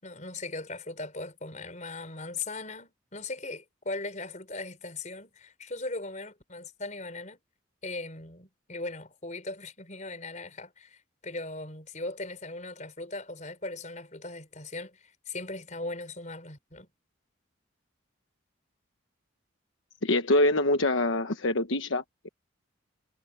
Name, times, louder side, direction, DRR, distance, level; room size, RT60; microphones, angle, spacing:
voice 1, 0.0-7.4 7.8-16.9, left 2 dB, 35° left, 5.2 m, -39 dB
voice 2, 20.0-22.3, left 1 dB, 75° left, 1.2 m, -25 dB
head